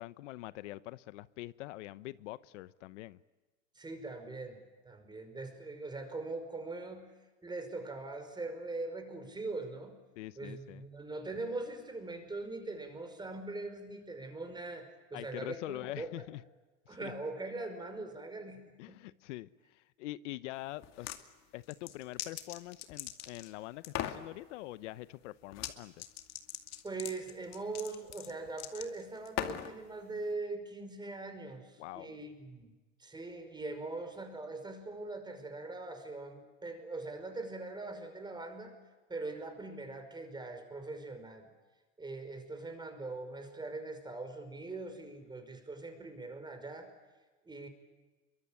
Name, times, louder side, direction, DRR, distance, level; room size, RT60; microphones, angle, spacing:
voice 1, 0.0-3.2 10.2-10.9 15.1-16.4 16.9-17.1 18.8-21.1 21.5-26.0 31.8-32.2, left 17 dB, 80° left, 0.9 m, -44 dB
voice 2, 3.8-7.1 7.4-10.0 10.4-16.1 16.9-19.0 26.8-32.7 33.0-38.7 39.1-41.5 42.0-46.9 47.5-47.7, right 3 dB, 10° right, 5.2 m, -42 dB
sound 1, 20.8-21.2 21.7-23.5 23.8-24.2 25.5-25.7 26.0-29.7, left 12 dB, 45° left, 2.4 m, -40 dB
27.0 x 23.5 x 8.9 m
supercardioid pair, 125°, 36 cm